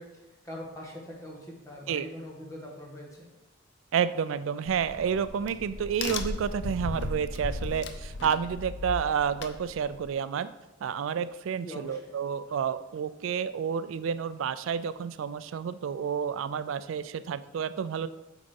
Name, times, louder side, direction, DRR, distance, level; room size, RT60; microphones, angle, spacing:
voice 1, 0.0-3.3 11.6-12.0, left 1 dB, 15° left, -2 dB, 1.8 m, -42 dB
voice 2, 3.9-10.5 10.8-18.1, right 7 dB, 80° right, 14 dB, 0.3 m, -30 dB
Crack, 4.7-10.1, left 3 dB, 60° left, 0.7 m, -37 dB
8.9 x 4.1 x 5.2 m, 1.0 s
head